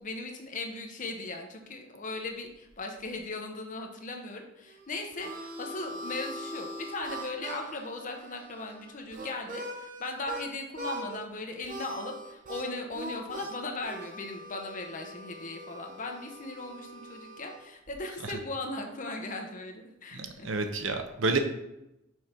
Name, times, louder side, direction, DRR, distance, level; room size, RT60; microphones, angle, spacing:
voice 1, 0.0-20.5, left 2 dB, 40° left, 3 dB, 1.0 m, -38 dB
Harmonica, 4.7-10.5 10.7-11.3 11.6-17.7, right 1 dB, 40° right, 0.9 m, -42 dB
voice 2, 20.1-21.4, right 3 dB, 75° right, 6 dB, 0.9 m, -29 dB
6.3 x 5.1 x 4.5 m, 0.88 s
head